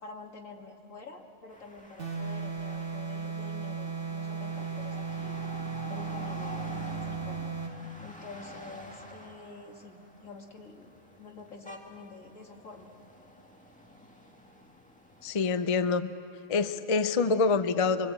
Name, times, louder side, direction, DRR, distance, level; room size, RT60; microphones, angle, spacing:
voice 1, 0.0-5.4 5.9-7.4 8.0-12.9, left 3 dB, 80° left, 2 dB, 2.5 m, -47 dB
sound 1, 1.5-15.5, equal, 5° left, 1.8 m, -48 dB
sound 2, 2.0-7.8, right 5 dB, 45° right, 2.0 m, -36 dB
voice 2, 15.2-16.1 16.5-18.1, left 4 dB, 35° left, 11 dB, 0.6 m, -26 dB
25.0 x 25.0 x 8.3 m, 2.7 s
omnidirectional pair, 1.3 m